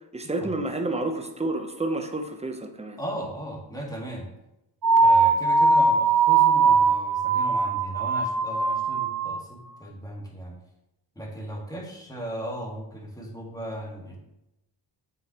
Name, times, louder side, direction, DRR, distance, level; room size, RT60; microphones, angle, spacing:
voice 1, 0.1-3.0, right 2 dB, 15° right, 5 dB, 0.8 m, -29 dB
voice 2, 3.0-4.3 5.0-10.5 11.2-14.2, right 1 dB, 10° left, -1 dB, 1.8 m, -37 dB
sound 1, 4.8-9.5, right 4 dB, 45° right, 0.8 m, -20 dB
7.4 x 6.2 x 3.0 m, 0.90 s
cardioid pair, 90°, 45 cm